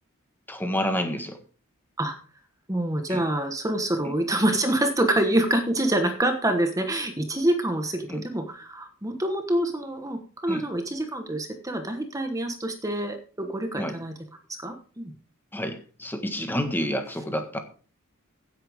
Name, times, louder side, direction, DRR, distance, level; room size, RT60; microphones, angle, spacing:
voice 1, 0.5-1.4 3.1-3.2 4.0-4.1 8.1-8.2 10.5-10.6 13.8-14.0 15.5-17.6, equal, 10° left, 6 dB, 1.5 m, -29 dB
voice 2, 2.7-14.1 14.6-15.1, right 1 dB, 15° right, 5 dB, 1.3 m, -26 dB
16.0 x 8.6 x 3.6 m, 0.40 s
head